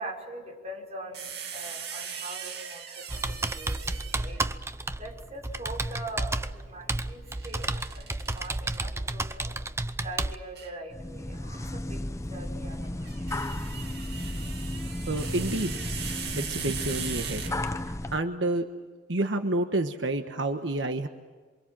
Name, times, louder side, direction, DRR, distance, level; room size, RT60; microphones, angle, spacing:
voice 1, 0.0-4.5 5.0-9.6 10.0-13.2, right 1 dB, 35° right, 1 dB, 5.3 m, -42 dB
sound 1, 1.1-4.5 7.3-8.8 10.6-10.8 12.9-18.0, right 7 dB, 60° right, 2.6 m, -39 dB
Computer keyboard, 3.1-10.4, right 2 dB, 15° right, 0.8 m, -32 dB
sound 2, 10.9-18.2, left 1 dB, 15° left, 0.8 m, -34 dB
voice 2, 15.1-15.8 16.4-17.5 18.1-18.7 19.1-21.1, right 2 dB, 80° right, 6 dB, 1.3 m, -29 dB
28.0 x 25.0 x 7.6 m, 1.5 s
head